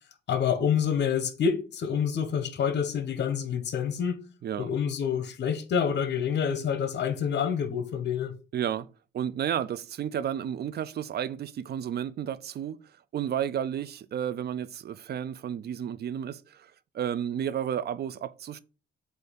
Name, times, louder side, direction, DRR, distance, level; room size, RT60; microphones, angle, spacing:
voice 1, 0.3-4.2 4.6-8.4, left 7 dB, 60° left, 1.1 m, -27 dB
voice 2, 8.5-8.9 9.1-12.8 13.1-18.6, right 9 dB, 55° right, 0.5 m, -32 dB
7.9 x 2.7 x 5.2 m
cardioid pair, 90°, 20 cm